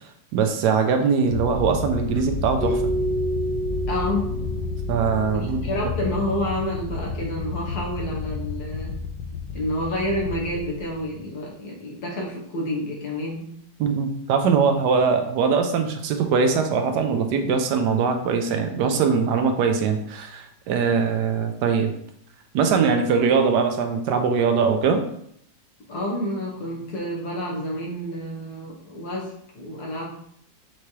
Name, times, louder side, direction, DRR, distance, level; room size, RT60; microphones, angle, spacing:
voice 1, 0.3-2.8 4.9-5.8 13.8-21.9 22.5-25.0, right 5 dB, 75° right, 6 dB, 1.1 m, -21 dB
sound 1, 1.3-11.4, left 4 dB, 75° left, 1.3 m, -31 dB
Keyboard (musical), 2.6-5.4, right 1 dB, 5° right, 1.5 m, -28 dB
voice 2, 3.9-4.3 5.3-9.0 9.5-13.5 25.9-30.2, left 1 dB, 60° left, -1 dB, 1.5 m, -29 dB
5.8 x 3.1 x 2.8 m, 0.69 s
omnidirectional pair, 2.0 m